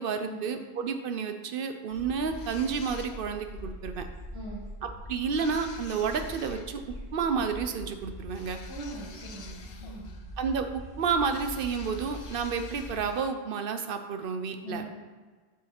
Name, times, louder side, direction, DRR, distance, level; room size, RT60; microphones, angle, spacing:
voice 1, 0.0-4.1 4.8-6.8 7.1-8.6 10.4-14.8, right 6 dB, 60° right, 7 dB, 0.8 m, -30 dB
sound 1, 1.9-13.1, equal, 5° right, 1.4 m, -43 dB
sound 2, 2.3-3.5 5.3-6.7 8.3-10.3 11.3-13.3, left 5 dB, 75° left, 1.0 m, -49 dB
voice 2, 4.3-4.7 8.7-10.1 14.6-15.1, right 1 dB, 25° right, -8 dB, 1.5 m, -41 dB
7.1 x 4.7 x 5.9 m, 1.4 s
omnidirectional pair, 1.1 m